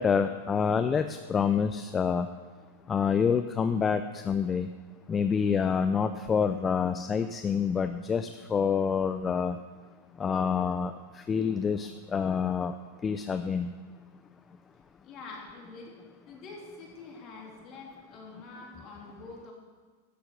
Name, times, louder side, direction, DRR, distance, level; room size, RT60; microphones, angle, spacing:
voice 1, 0.0-2.3 2.9-4.7 5.1-9.6 10.2-10.9 11.3-12.7 13.0-13.7, left 6 dB, 20° left, 9 dB, 0.4 m, -27 dB
voice 2, 15.0-15.9 16.3-19.5, left 3 dB, 40° left, -1 dB, 3.2 m, -46 dB
12.0 x 6.9 x 6.2 m, 1.5 s
hypercardioid pair, 115°, 0 cm